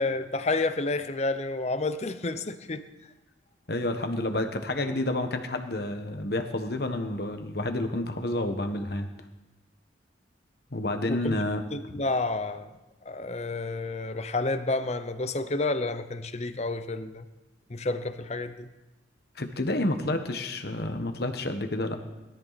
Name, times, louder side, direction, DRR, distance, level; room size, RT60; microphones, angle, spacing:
voice 1, 0.0-2.8 11.1-11.4 11.7-12.7 13.0-17.2 17.7-18.7, left 2 dB, 35° left, 0.7 m, -30 dB
voice 2, 3.7-9.1 10.7-11.6 11.9-12.0 19.4-22.0, left 1 dB, 55° left, 1.3 m, -29 dB
21.0 x 13.0 x 4.2 m
head